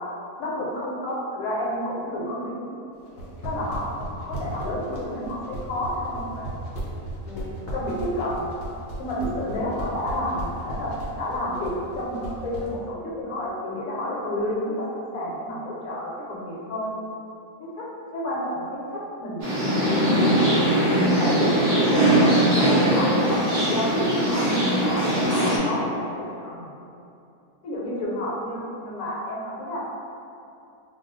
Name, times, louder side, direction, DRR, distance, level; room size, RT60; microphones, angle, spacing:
voice 1, 0.4-2.7 3.4-3.9 4.3-6.5 7.2-8.5 9.0-16.9 17.6-19.6 21.1-22.4 22.9-26.8 27.6-29.8, left 1 dB, 75° left, -5 dB, 1.1 m, -30 dB
sound 1, 3.1-12.7, right 1 dB, 55° left, 0.8 m, -34 dB
sound 2, 19.4-25.6, right 1 dB, 55° right, 0.4 m, -21 dB
2.3 x 2.3 x 3.8 m, 2.6 s
omnidirectional pair, 1.6 m